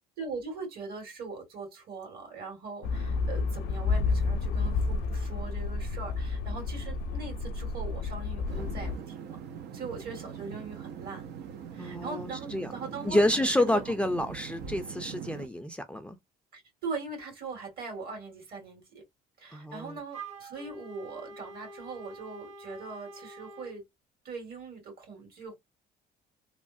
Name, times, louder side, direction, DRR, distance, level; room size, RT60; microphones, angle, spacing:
voice 1, 0.2-9.4 9.7-11.2 11.7-13.9 16.5-19.0 19.4-23.8 24.2-25.6, right 4 dB, 65° right, 2.0 m, -41 dB
sound 1, 2.8-9.0, left 3 dB, 75° left, 0.5 m, -30 dB
sound 2, 8.5-15.5, right 8 dB, 80° right, 0.6 m, -42 dB
voice 2, 11.8-12.7 13.0-16.2 19.5-20.0, left 1 dB, 5° left, 0.4 m, -28 dB
Wind instrument woodwind instrument, 20.1-23.8, right 3 dB, 40° right, 1.0 m, -46 dB
3.1 x 2.1 x 2.5 m
cardioid pair, 110°, 17 cm